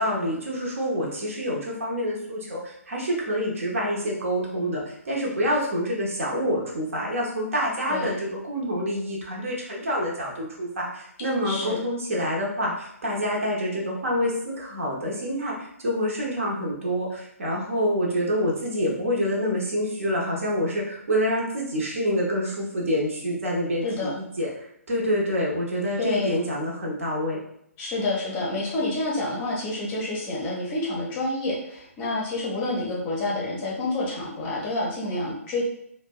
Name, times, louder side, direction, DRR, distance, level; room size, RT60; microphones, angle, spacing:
voice 1, 0.0-27.4 32.6-32.8, equal, 60° right, -3 dB, 0.8 m, -27 dB
voice 2, 11.4-11.8 23.8-24.1 26.0-26.4 27.8-35.6, left 2 dB, 20° left, -4 dB, 0.6 m, -28 dB
2.6 x 2.1 x 2.3 m, 0.75 s
figure-of-eight pair, 130°, 8 cm